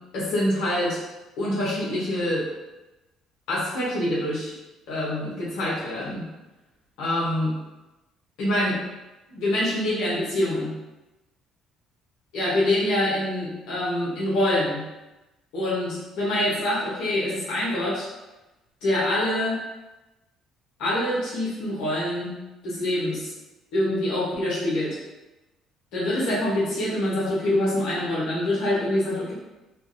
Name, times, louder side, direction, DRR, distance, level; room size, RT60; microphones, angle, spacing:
voice 1, 0.1-1.0 1.4-2.4 3.5-4.5 4.9-6.3 7.0-7.5 8.4-8.8 9.3-10.7 12.3-14.8 15.5-18.1 18.8-19.6 20.8-22.3 22.6-23.3 23.7-25.0 25.9-29.3, left 1 dB, 75° left, -7 dB, 0.9 m, -25 dB
2.5 x 2.4 x 2.6 m, 1.0 s
hypercardioid pair, 65°, 0 cm